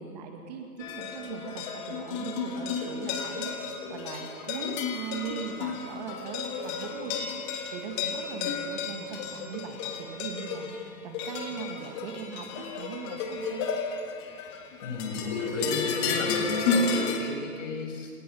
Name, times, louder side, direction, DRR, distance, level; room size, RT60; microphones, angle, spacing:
voice 1, 0.0-7.3 7.7-13.7 16.6-16.9, right 6 dB, 25° right, 3 dB, 1.9 m, -40 dB
sound 1, 0.8-17.2, left 5 dB, 20° left, 1.6 m, -32 dB
voice 2, 14.8-18.1, left 3 dB, 50° left, 2 dB, 6.6 m, -33 dB
27.5 x 27.5 x 5.5 m, 2.1 s
hypercardioid pair, 165°, 49 cm